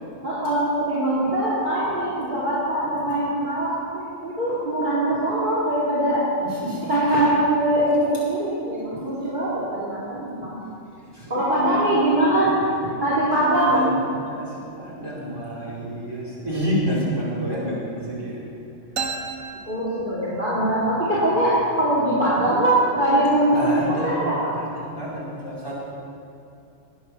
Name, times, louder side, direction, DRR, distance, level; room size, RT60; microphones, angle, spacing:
voice 1, 0.2-6.2 6.8-10.6 11.3-12.5 12.8-13.8 18.0-18.1 19.7-24.5, right 1 dB, 35° right, -9 dB, 3.1 m, -22 dB
voice 2, 6.4-6.8 7.1-7.2 11.1-11.8 13.3-14.5 14.8-18.4 21.1-21.4 22.0-22.3 23.5-24.2 24.5-25.7, equal, 15° right, -7 dB, 5.0 m, -29 dB
sound 1, 19.0-20.7, right 5 dB, 85° right, 2.0 m, -33 dB
20.5 x 9.0 x 7.2 m, 2.6 s
omnidirectional pair, 1.4 m